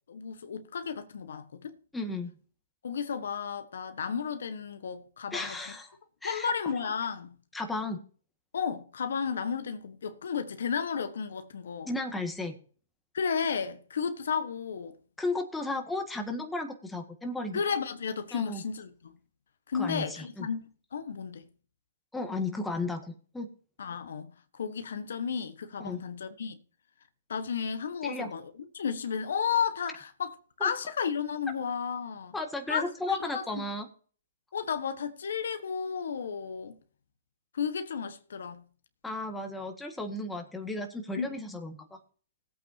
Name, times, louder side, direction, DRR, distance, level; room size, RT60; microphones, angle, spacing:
voice 1, 0.1-1.8 2.8-5.6 6.2-7.4 8.5-11.9 13.1-15.0 17.5-19.1 19.7-21.5 23.8-26.6 27.3-32.4 32.7-33.6 34.5-36.8 37.5-38.6 41.2-41.4, left 6 dB, 70° left, 1.3 m, -33 dB
voice 2, 1.9-2.3 5.3-6.7 7.5-8.0 11.9-12.6 15.2-17.6 18.3-18.6 19.7-20.5 22.1-23.5 25.8-26.0 28.0-28.3 30.6-30.7 32.3-33.9 39.0-42.0, left 2 dB, 5° left, 1.7 m, -34 dB
18.5 x 8.5 x 2.8 m
hypercardioid pair, 135°, 0 cm